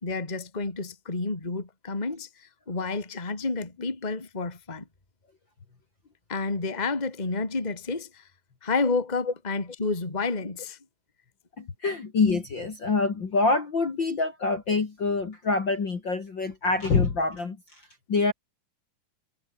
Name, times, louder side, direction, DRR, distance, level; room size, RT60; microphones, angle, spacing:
voice 1, 0.0-4.9 6.3-8.2 8.6-10.8, left 3 dB, 15° left, 2.6 m, -30 dB
voice 2, 11.6-17.6 18.1-18.3, left 3 dB, 35° left, 2.7 m, -25 dB
omnidirectional pair, 3.9 m